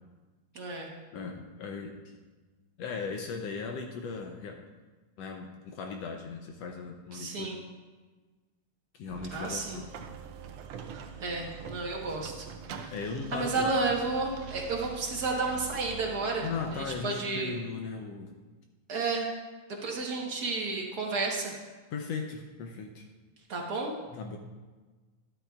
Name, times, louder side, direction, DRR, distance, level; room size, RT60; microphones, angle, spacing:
voice 1, 0.5-0.9 7.1-7.6 9.3-9.8 11.2-12.9 13.3-16.5 16.7-17.5 18.9-19.3 19.8-21.5 23.5-23.9, right 3 dB, 50° right, -1 dB, 1.1 m, -32 dB
voice 2, 1.1-2.2 2.8-4.7 5.2-7.6 8.9-9.9 12.9-13.7 16.4-18.3 21.9-23.1 24.1-24.4, left 5 dB, 75° left, 3 dB, 1.7 m, -37 dB
sound 1, 9.1-17.0, right 7 dB, 75° right, 1.4 m, -44 dB
12.5 x 12.0 x 2.4 m, 1.3 s
omnidirectional pair, 3.3 m